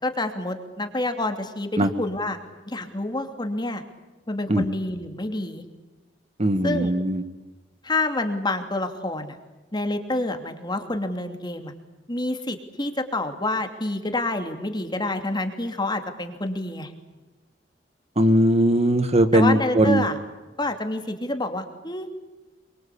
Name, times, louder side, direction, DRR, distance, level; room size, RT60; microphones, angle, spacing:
voice 1, 0.0-2.4 2.6-3.8 4.3-5.6 6.6-6.9 7.8-9.4 9.7-11.7 12.1-16.9 19.3-20.2 20.6-22.1, left 2 dB, 25° left, 6 dB, 2.8 m, -28 dB
voice 2, 6.4-7.2 18.1-20.1, right 1 dB, 35° right, 9 dB, 1.6 m, -19 dB
27.0 x 24.0 x 8.6 m, 1.2 s
head